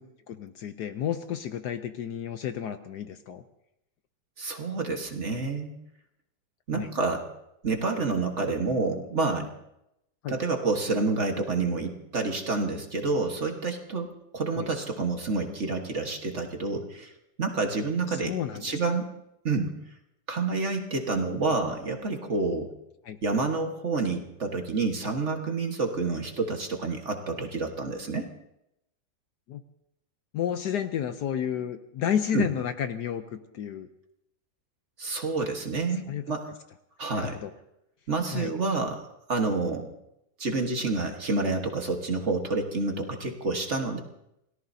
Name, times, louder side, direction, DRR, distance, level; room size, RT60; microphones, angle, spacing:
voice 1, 0.3-3.4 6.7-6.9 10.2-10.3 14.6-14.7 18.3-18.6 23.0-23.2 29.5-29.6 30.3-33.9 36.1-36.2 37.1-37.5 38.3-38.5, left 9 dB, 65° left, 9 dB, 1.2 m, -31 dB
voice 2, 4.4-5.7 6.7-7.3 7.6-9.5 10.3-17.1 17.4-19.1 19.4-19.7 20.3-22.7 23.2-28.3 32.3-32.5 35.0-36.5 37.0-37.4 38.1-39.0 39.3-39.9 40.4-44.0, right 3 dB, 40° right, 3 dB, 1.6 m, -28 dB
28.5 x 18.0 x 2.7 m, 0.83 s
omnidirectional pair, 2.1 m